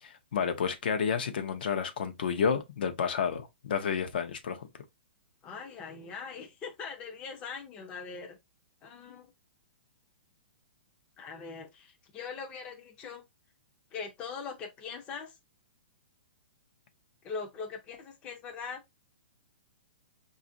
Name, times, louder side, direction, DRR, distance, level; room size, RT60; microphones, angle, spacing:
voice 1, 0.0-4.7, left 6 dB, 60° left, 0.7 m, -30 dB
voice 2, 5.4-8.4 8.8-9.3 11.2-13.2 13.9-15.4 17.2-18.8, left 5 dB, 15° left, 0.5 m, -41 dB
4.9 x 2.5 x 2.5 m
hypercardioid pair, 165°, 6 cm